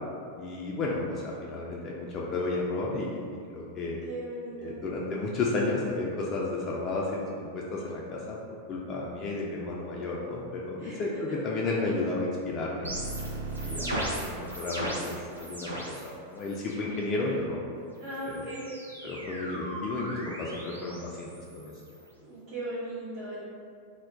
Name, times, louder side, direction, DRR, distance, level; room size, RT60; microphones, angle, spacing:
voice 1, 0.4-3.2 3.5-4.0 4.6-8.4 8.7-13.0 13.6-17.6 18.4-18.5 19.0-21.7, left 2 dB, 30° left, -3 dB, 0.3 m, -32 dB
voice 2, 4.0-4.8 10.8-11.4 18.0-18.7 22.2-23.4, right 1 dB, 40° right, -10 dB, 0.7 m, -38 dB
sound 1, 12.8-16.1 16.4-16.9 18.0-22.1, right 1 dB, 85° right, 0.5 m, -37 dB
2.2 x 2.1 x 3.5 m, 2.3 s
figure-of-eight pair, 90°, 0 cm